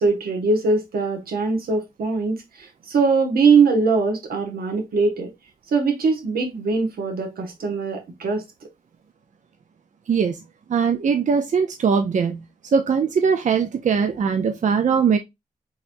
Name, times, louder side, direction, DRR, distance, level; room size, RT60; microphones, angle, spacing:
voice 1, 0.0-5.3 5.7-8.4, right 4 dB, 80° right, 1.1 m, -21 dB
voice 2, 10.7-12.4 12.7-15.2, right 6 dB, 55° right, 0.5 m, -20 dB
3.9 x 2.9 x 2.5 m
cardioid pair, 65°, 15 cm